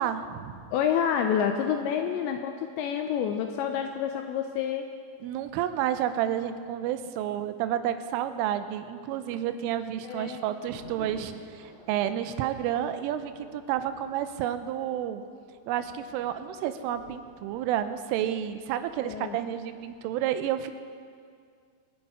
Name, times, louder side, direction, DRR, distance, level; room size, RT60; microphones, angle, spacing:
voice 1, 0.0-0.7 5.2-15.2 15.7-20.7, right 11 dB, 85° right, 10 dB, 3.2 m, -30 dB
voice 2, 0.7-4.9 10.0-10.4 19.0-19.4, left 8 dB, 80° left, 5 dB, 2.6 m, -28 dB
sound 1, 10.5-19.9, equal, 55° right, 5.1 m, -51 dB
25.5 x 8.8 x 4.9 m, 2.1 s
omnidirectional pair, 5.7 m